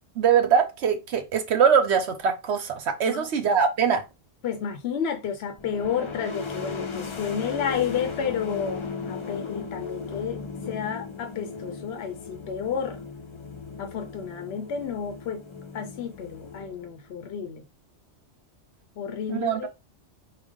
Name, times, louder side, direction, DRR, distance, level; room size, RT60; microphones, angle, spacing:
voice 1, 0.2-4.0 19.3-19.7, right 7 dB, 75° right, 0.9 m, -22 dB
voice 2, 4.4-10.4 10.7-13.0 13.8-15.4 15.7-17.6 19.0-19.7, left 7 dB, 70° left, 0.8 m, -31 dB
sound 1, 5.6-17.1, left 4 dB, 40° left, 0.4 m, -37 dB
4.9 x 2.2 x 3.6 m
omnidirectional pair, 1.2 m